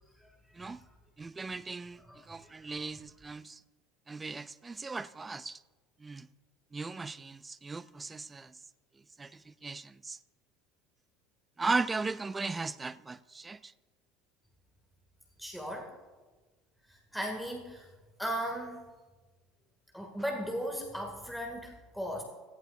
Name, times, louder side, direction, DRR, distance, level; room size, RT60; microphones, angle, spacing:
voice 1, 1.2-2.0 2.3-3.6 4.1-5.6 6.0-6.3 6.7-8.5 9.2-10.2 11.6-13.7, right 4 dB, 20° right, 0.5 m, -37 dB
voice 2, 2.1-2.9 15.4-15.9 16.9-17.9 18.2-18.8 19.9-22.2, equal, ahead, 2.1 m, -37 dB
18.0 x 15.5 x 2.5 m
figure-of-eight pair, 65°, 0 cm